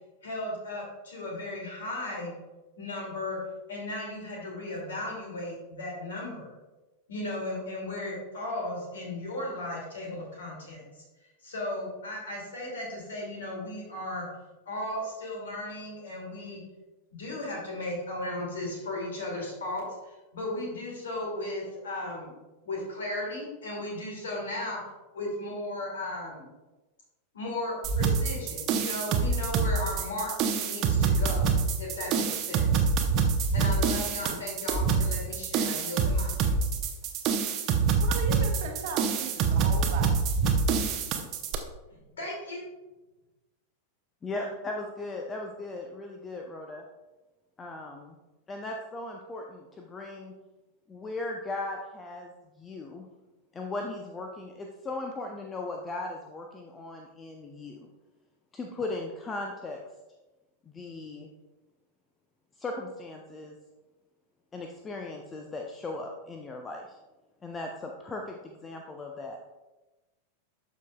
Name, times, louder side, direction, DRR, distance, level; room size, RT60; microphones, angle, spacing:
voice 1, 0.2-2.3 2.8-3.4 3.7-6.5 7.1-11.0 11.4-14.3 14.7-16.6 17.1-22.3 22.6-24.8 25.1-26.4 27.3-30.3 30.6-31.5 31.8-32.9 33.5-36.3 42.2-42.6, left 1 dB, 65° left, -2 dB, 2.3 m, -36 dB
sound 1, 27.8-41.5, right 5 dB, 35° right, 0.7 m, -26 dB
voice 2, 38.0-40.2, right 4 dB, 50° right, 3 dB, 1.1 m, -37 dB
voice 3, 44.2-46.8 47.6-48.2 48.5-50.3 50.9-53.1 53.5-57.9 58.5-59.8 60.7-61.3 62.6-63.6 64.5-67.0 67.4-69.4, left 2 dB, 20° left, 2 dB, 0.6 m, -37 dB
12.0 x 4.9 x 2.3 m, 1.1 s
figure-of-eight pair, 90°, 0 cm